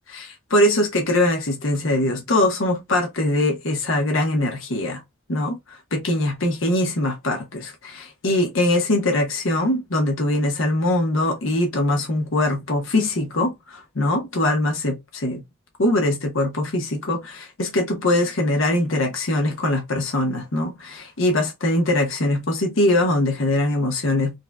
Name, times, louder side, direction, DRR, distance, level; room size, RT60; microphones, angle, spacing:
voice 1, 0.1-5.0 5.3-15.4 15.8-24.4, left 1 dB, 75° left, 1.0 m, -22 dB
5.1 x 2.2 x 2.4 m
head